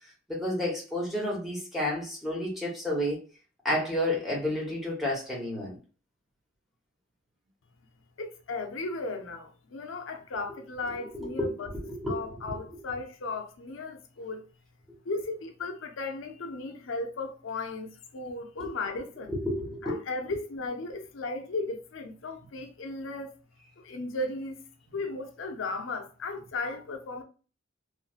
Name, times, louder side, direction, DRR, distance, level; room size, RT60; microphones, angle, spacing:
voice 1, 0.3-3.2 3.6-5.7 10.9-12.5 18.6-18.7 19.3-19.9, left 1 dB, ahead, 1.1 m, -31 dB
voice 2, 8.2-11.7 12.1-14.4 15.0-19.3 19.8-23.3 23.8-24.6 24.9-27.2, left 3 dB, 85° left, 0.5 m, -36 dB
3.1 x 2.6 x 2.4 m
head